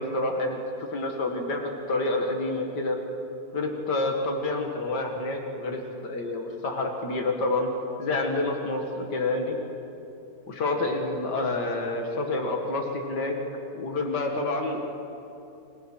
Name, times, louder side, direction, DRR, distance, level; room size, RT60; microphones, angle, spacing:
voice 1, 0.0-3.0 3.5-7.7 8.0-9.6 10.5-13.3 13.7-14.8, left 2 dB, 85° left, 2 dB, 2.5 m, -28 dB
28.0 x 17.5 x 6.2 m, 2.9 s
omnidirectional pair, 1.8 m